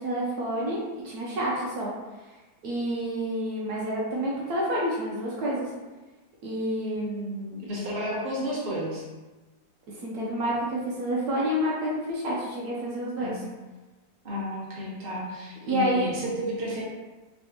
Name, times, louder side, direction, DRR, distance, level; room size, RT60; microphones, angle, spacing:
voice 1, 0.0-1.9 2.6-5.7 6.4-7.7 9.9-13.3 15.7-16.0, right 1 dB, 70° right, -5 dB, 1.1 m, -29 dB
voice 2, 7.6-9.0 13.2-13.4 14.2-16.8, equal, 40° right, -6 dB, 1.0 m, -32 dB
3.5 x 3.2 x 2.8 m, 1.2 s
omnidirectional pair, 1.8 m